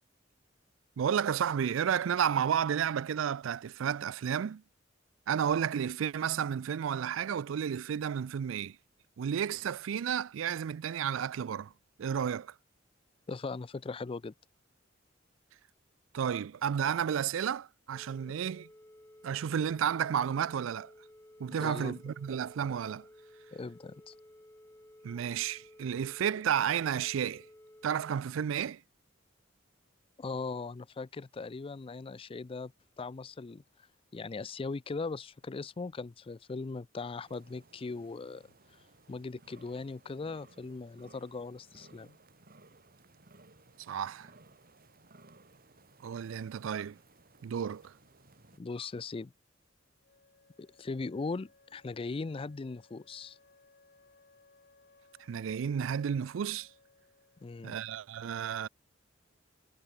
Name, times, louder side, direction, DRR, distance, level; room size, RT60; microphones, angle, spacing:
voice 1, 1.0-4.6 5.3-8.8 9.2-11.7 12.0-12.5 16.1-18.7 19.2-20.9 21.4-23.1 25.0-27.5 27.8-28.8 43.9-44.3 46.0-47.0 47.4-47.9 55.3-56.7 57.6-58.7, right 8 dB, 80° right, 0.4 m, -32 dB
voice 2, 13.3-14.3 21.6-22.0 23.5-24.1 30.2-32.7 33.0-33.6 34.1-38.4 39.1-42.2 48.6-49.3 50.6-53.4 57.4-57.8, left 4 dB, 30° left, 0.4 m, -39 dB
sound 1, 17.9-28.2, left 1 dB, 15° left, 1.4 m, -56 dB
sound 2, 37.2-48.6, right 2 dB, 50° right, 3.3 m, -60 dB
Wind instrument woodwind instrument, 50.0-57.7, left 3 dB, 50° left, 2.8 m, -64 dB
head